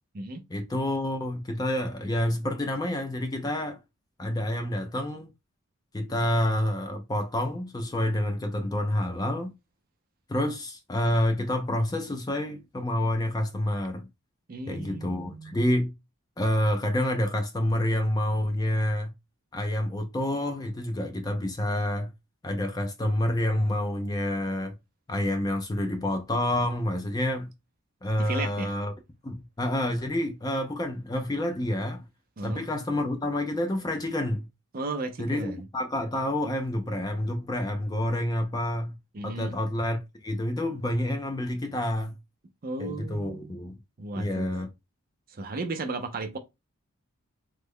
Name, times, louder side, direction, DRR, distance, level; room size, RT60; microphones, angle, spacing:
voice 1, 0.5-3.8 4.2-5.3 5.9-9.5 10.3-14.1 14.7-15.9 16.4-19.1 19.5-22.1 22.4-24.7 25.1-27.5 28.0-28.9 29.2-32.0 32.4-34.5 35.2-39.0 39.2-42.1 42.8-43.8 44.2-44.7, left 1 dB, 15° left, 0.3 m, -28 dB
voice 2, 14.5-15.7 28.2-28.7 32.4-32.6 34.7-35.6 39.1-39.6 42.6-43.5 44.0-44.5 45.3-46.4, right 3 dB, 40° right, 0.5 m, -35 dB
3.1 x 2.0 x 3.5 m
head